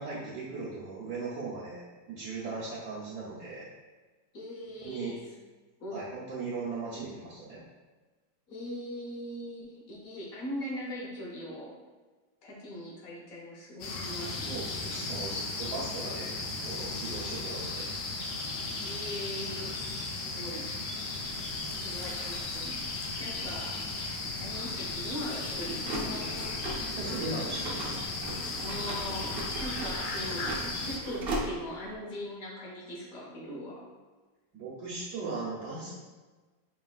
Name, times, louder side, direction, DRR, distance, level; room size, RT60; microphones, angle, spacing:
voice 1, 0.0-1.8 2.1-3.6 4.8-5.2 5.9-7.6 14.4-17.9 26.9-28.1 34.5-35.9, right 3 dB, 70° right, -9 dB, 1.4 m, -38 dB
voice 2, 4.3-5.2 5.8-6.1 8.5-11.8 12.4-14.6 17.5-17.6 18.8-20.7 21.8-22.8 23.2-23.8 24.4-26.3 28.6-33.9, equal, 60° left, -4 dB, 1.1 m, -40 dB
sound 1, 13.8-31.0, left 3 dB, 85° left, 1.3 m, -35 dB
sound 2, 21.2-31.9, right 1 dB, 85° right, 0.5 m, -40 dB
5.1 x 3.2 x 2.3 m, 1.3 s
omnidirectional pair, 1.9 m